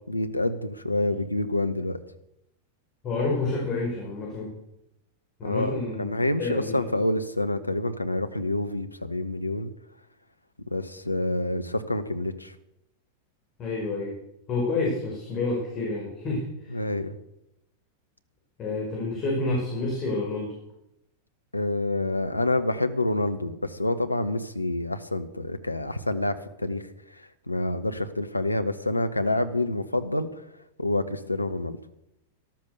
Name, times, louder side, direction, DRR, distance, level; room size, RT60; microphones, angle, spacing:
voice 1, 0.1-2.0 5.4-9.7 10.7-12.5 16.7-17.2 21.5-30.5 30.8-31.8, left 1 dB, 85° left, 10 dB, 1.0 m, -27 dB
voice 2, 3.0-4.5 5.4-6.1 6.4-6.9 13.6-14.2 14.5-16.8 18.6-20.5, left 3 dB, 30° left, -3 dB, 5.4 m, -29 dB
13.5 x 12.5 x 6.6 m, 0.84 s
figure-of-eight pair, 90°, 0 cm